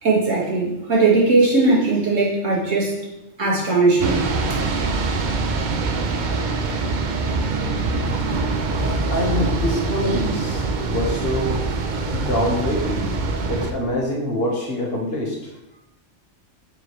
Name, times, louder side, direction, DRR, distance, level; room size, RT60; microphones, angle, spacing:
voice 1, 0.0-2.9 3.4-4.2 4.5-4.6, right 3 dB, 90° right, -4 dB, 2.1 m, -18 dB
sound 1, 4.0-13.7, right 3 dB, 50° right, 0.6 m, -24 dB
voice 2, 9.1-11.6 12.1-15.4, left 1 dB, 55° left, -2 dB, 1.6 m, -25 dB
6.9 x 4.8 x 3.2 m, 0.89 s
omnidirectional pair, 1.3 m